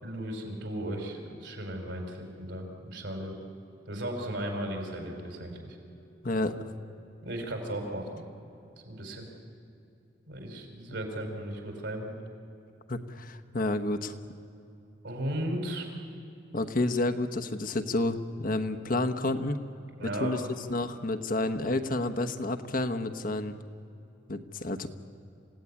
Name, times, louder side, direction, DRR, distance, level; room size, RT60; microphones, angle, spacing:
voice 1, 0.0-3.4 3.9-5.8 7.2-8.2 8.8-9.3 10.3-12.1 15.0-15.9 20.0-20.4, right 1 dB, 70° right, 3 dB, 4.8 m, -35 dB
Mallet percussion, 4.2-10.0, right 3 dB, 90° right, 7.8 m, -59 dB
voice 2, 6.2-6.6 10.9-11.0 12.9-14.1 16.5-19.6 20.2-20.4 20.7-23.5 24.3-24.9, left 2 dB, 45° left, 7 dB, 1.1 m, -30 dB
27.0 x 16.5 x 9.8 m, 2.7 s
head